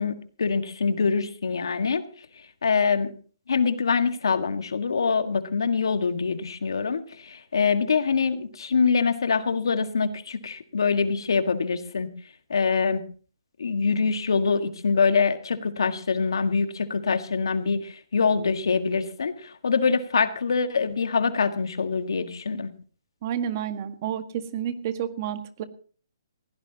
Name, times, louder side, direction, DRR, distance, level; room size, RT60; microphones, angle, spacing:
voice 1, 0.0-2.0 2.6-3.1 3.5-12.1 12.5-13.0 13.6-22.7, left 5 dB, 75° left, 8 dB, 1.7 m, -24 dB
voice 2, 23.2-25.6, right 9 dB, 40° right, 9 dB, 1.7 m, -30 dB
19.5 x 16.5 x 2.9 m, 0.41 s
hypercardioid pair, 150°, 2 cm